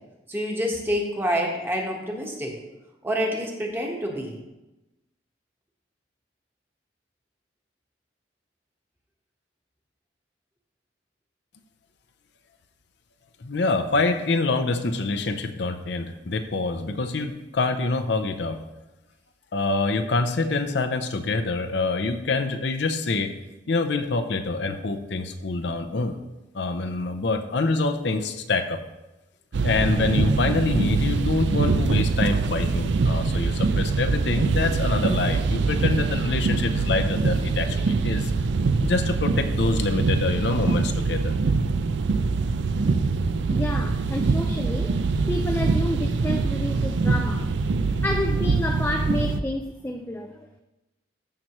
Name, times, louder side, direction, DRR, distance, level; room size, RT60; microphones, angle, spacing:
voice 1, 0.3-2.5 3.0-4.4, equal, 10° right, 0 dB, 1.3 m, -27 dB
voice 2, 13.4-18.6 19.5-23.3 23.7-26.2 26.5-28.8 29.6-38.3 38.8-41.3, left 3 dB, 60° left, 6 dB, 0.6 m, -26 dB
sound 1, 29.5-49.4, right 4 dB, 65° right, 0.5 m, -24 dB
voice 3, 43.5-47.6 48.0-50.6, left 1 dB, 10° left, 4 dB, 0.4 m, -30 dB
14.0 x 5.8 x 3.1 m, 1.0 s
head